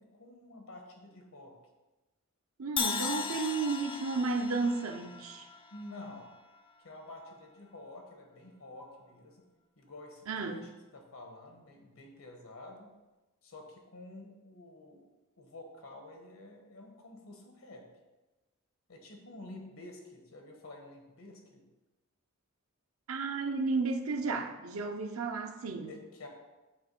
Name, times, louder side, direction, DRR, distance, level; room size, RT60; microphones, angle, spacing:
voice 1, 0.0-1.6 5.7-6.3 6.8-9.5 9.8-12.9 13.4-15.1 15.4-17.9 18.9-21.7 25.9-26.3, left 2 dB, 90° left, 2 dB, 1.3 m, -49 dB
voice 2, 2.6-5.5 10.3-10.6 23.1-25.9, right 4 dB, 85° right, 5 dB, 0.7 m, -33 dB
Crash cymbal, 2.8-6.8, left 6 dB, 25° left, 0.4 m, -37 dB
7.1 x 3.2 x 5.4 m, 1.1 s
head